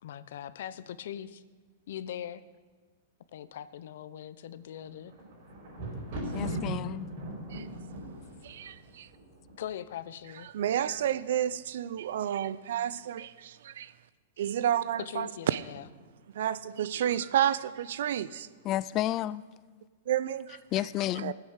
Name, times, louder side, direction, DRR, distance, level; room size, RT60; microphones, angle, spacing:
voice 1, 0.0-1.4 1.9-2.4 3.3-5.1 9.6-10.5 15.1-15.9, left 10 dB, 70° left, 0.7 m, -41 dB
Thunder, 4.7-9.9 10.6-11.1 11.4-11.5, right 1 dB, 55° right, 5.3 m, -38 dB
voice 2, 6.3-7.1 18.6-19.4 20.7-21.3, left 14 dB, 30° left, 0.3 m, -31 dB
voice 3, 8.4-9.1 10.5-13.9 14.4-15.6 16.3-18.5 20.1-20.6 21.2-21.3, right 10 dB, 70° right, 0.5 m, -30 dB
15.5 x 8.2 x 6.5 m
hypercardioid pair, 150°, 0 cm